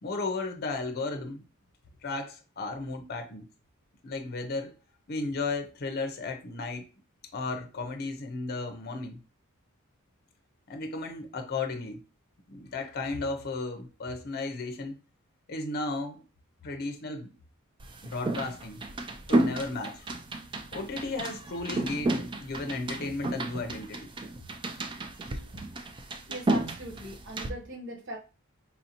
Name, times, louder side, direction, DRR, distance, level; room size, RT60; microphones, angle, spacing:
voice 1, 0.0-1.4 2.0-3.5 4.0-4.7 5.1-6.8 7.3-9.2 10.7-12.0 12.5-15.0 15.5-16.2 16.6-17.3 18.0-18.8 19.3-20.1 20.7-24.1, left 3 dB, 45° left, 0.6 m, -34 dB
sound 1, 17.8-27.5, right 2 dB, 20° right, 0.3 m, -32 dB
voice 2, 26.3-28.2, right 1 dB, 55° right, 0.7 m, -39 dB
4.2 x 2.7 x 2.8 m
head